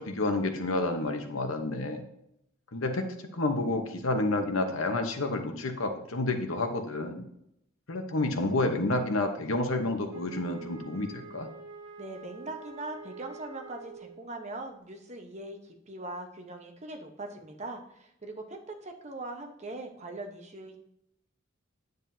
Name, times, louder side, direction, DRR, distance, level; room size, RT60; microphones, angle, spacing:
voice 1, 0.0-2.1 2.7-7.2 7.9-11.5, left 2 dB, 85° left, 6 dB, 1.0 m, -29 dB
Wind instrument woodwind instrument, 10.1-14.3, right 4 dB, 80° right, 1.7 m, -46 dB
voice 2, 12.0-20.8, right 2 dB, 35° right, 3 dB, 1.1 m, -41 dB
9.2 x 8.0 x 2.8 m, 0.77 s
head